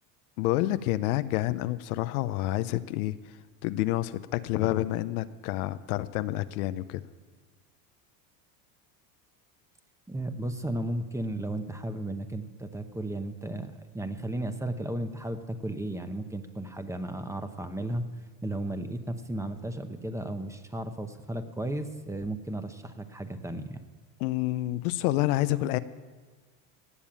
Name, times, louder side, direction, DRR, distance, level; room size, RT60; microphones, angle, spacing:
voice 1, 0.4-3.2 3.6-7.0 24.2-25.8, left 16 dB, 80° left, 13 dB, 0.8 m, -28 dB
voice 2, 10.1-18.0 18.4-23.8, right 1 dB, 5° right, 8 dB, 0.9 m, -34 dB
18.0 x 7.3 x 8.6 m, 1.4 s
supercardioid pair, 120°, 43 cm